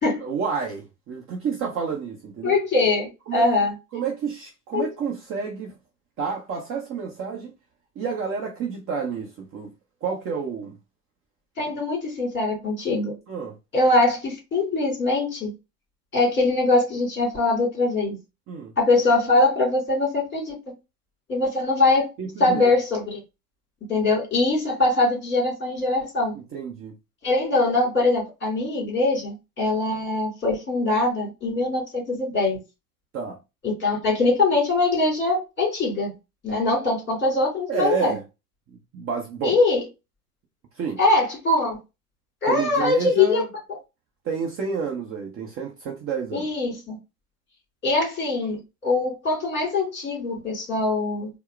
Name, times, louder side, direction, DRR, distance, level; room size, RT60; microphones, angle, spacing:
voice 1, 0.2-2.5 3.3-3.5 3.9-5.7 6.2-7.5 8.0-9.7 10.0-10.7 13.3-13.5 18.5-18.7 22.2-22.7 26.5-26.9 33.1-33.4 37.7-38.2 38.9-39.6 40.7-41.0 42.4-43.5 44.2-46.5, right 6 dB, 30° right, 0.9 m, -29 dB
voice 2, 2.4-3.7 4.7-4.9 11.6-13.1 13.7-15.5 16.1-18.2 18.8-20.5 21.3-22.1 22.4-23.2 23.9-26.3 27.2-32.6 33.6-36.1 36.4-38.1 39.4-39.8 41.0-41.8 42.4-43.4 46.3-47.0 47.8-51.3, left 2 dB, 25° left, 2.3 m, -22 dB
4.5 x 2.2 x 3.2 m
figure-of-eight pair, 85°, 48 cm